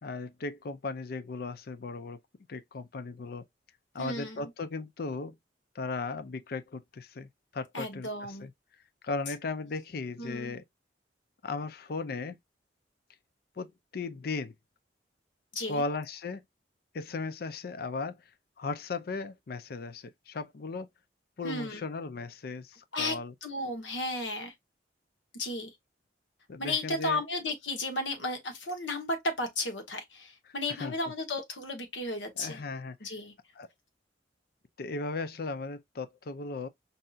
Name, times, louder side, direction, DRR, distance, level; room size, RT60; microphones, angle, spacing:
voice 1, 0.0-2.2 2.5-3.4 3.9-5.4 5.7-8.1 8.4-8.5 9.0-10.6 11.4-12.4 13.6-13.7 13.9-14.5 15.7-16.4 16.9-18.2 18.6-20.9 21.4-23.3 26.5-27.2 30.7-30.9 32.4-33.0 33.6-33.7 34.8-36.7, left 3 dB, 55° left, 0.5 m, -36 dB
voice 2, 4.0-4.5 7.7-8.5 10.2-10.6 15.5-15.8 21.4-21.8 22.9-23.2 23.4-24.5 25.3-25.7 26.6-32.6 33.0-33.3, left 2 dB, 80° left, 1.1 m, -34 dB
5.4 x 2.7 x 2.4 m
head